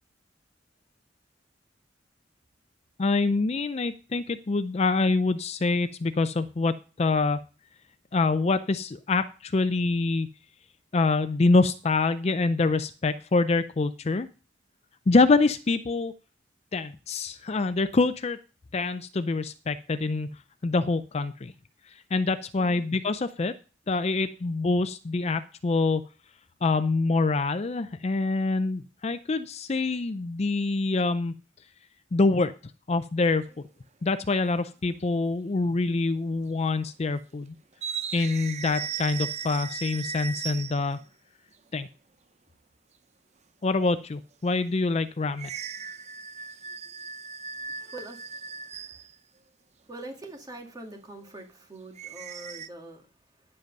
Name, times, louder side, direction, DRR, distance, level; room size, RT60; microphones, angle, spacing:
voice 1, 3.0-7.4 8.1-10.3 10.9-14.3 15.1-16.1 16.7-18.4 18.7-20.4 20.6-21.5 22.1-23.5 23.9-26.0 26.6-31.3 32.1-32.5 32.9-33.4 34.0-37.5 38.1-41.0 41.7-41.9 43.6-45.5, left 3 dB, 35° left, 12 dB, 0.5 m, -25 dB
sound 1, 33.4-33.7 34.9-35.0 36.0-36.3 36.6-36.7 37.7-41.0 45.4-49.2 52.0-52.7, right 6 dB, 35° right, 0.6 m, -37 dB
voice 2, 47.6-49.0 49.8-53.5, right 2 dB, 20° right, 3 dB, 2.2 m, -44 dB
10.5 x 7.7 x 5.3 m, 0.35 s
head